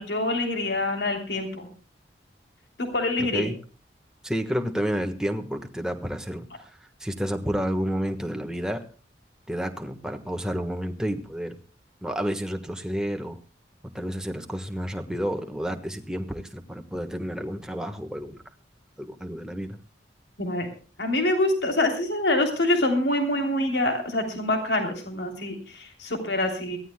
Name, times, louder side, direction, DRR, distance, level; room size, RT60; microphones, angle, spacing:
voice 1, 0.0-1.7 2.8-3.5 20.4-20.7 21.0-26.8, left 1 dB, 75° left, 4 dB, 3.2 m, -25 dB
voice 2, 3.2-3.6 4.2-6.7 7.0-8.8 9.5-11.6 12.0-13.4 13.9-18.4 19.0-19.8, equal, 5° right, 4 dB, 1.3 m, -30 dB
23.0 x 16.0 x 2.2 m, 0.37 s
head